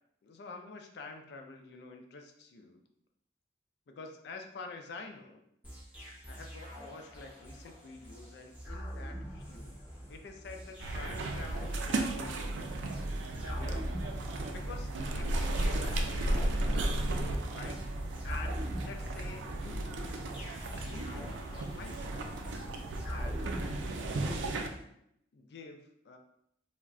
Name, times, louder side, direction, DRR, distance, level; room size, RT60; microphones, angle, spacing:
voice 1, 0.2-2.8 3.9-5.4 6.3-9.7 10.1-12.6 13.5-13.9 14.5-16.1 17.5-17.9 18.2-20.3 20.8-22.4 23.0-23.8 24.1-24.7 25.3-26.2, left 3 dB, 65° left, 5 dB, 0.4 m, -48 dB
sound 1, 5.6-24.8, equal, 10° right, 0.8 m, -43 dB
sound 2, 10.8-24.7, right 1 dB, 90° right, 0.4 m, -34 dB
2.3 x 2.1 x 3.6 m, 0.74 s
head